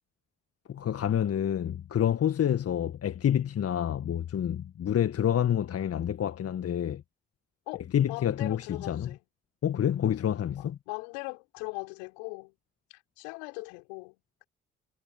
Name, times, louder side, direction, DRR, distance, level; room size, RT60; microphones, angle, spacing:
voice 1, 0.7-7.0 7.9-9.1 9.6-10.8, left 10 dB, 50° left, 1.7 m, -28 dB
voice 2, 7.7-9.2 10.6-12.5 12.9-14.4, left 35 dB, 75° left, 4.8 m, -40 dB
figure-of-eight pair, 40°, 30 cm